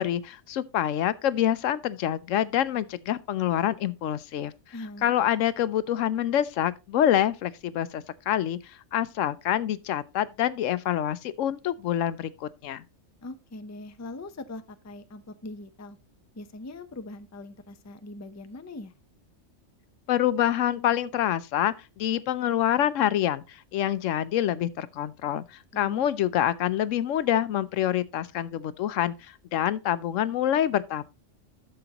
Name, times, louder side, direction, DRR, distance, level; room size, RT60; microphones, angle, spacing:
voice 1, 0.0-4.5 5.0-12.8 20.1-31.0, left 11 dB, 80° left, 1.0 m, -26 dB
voice 2, 4.7-5.1 13.2-16.0 16.4-18.9 25.7-26.1, left 2 dB, 20° left, 0.5 m, -41 dB
11.5 x 6.8 x 2.9 m
omnidirectional pair, 1.3 m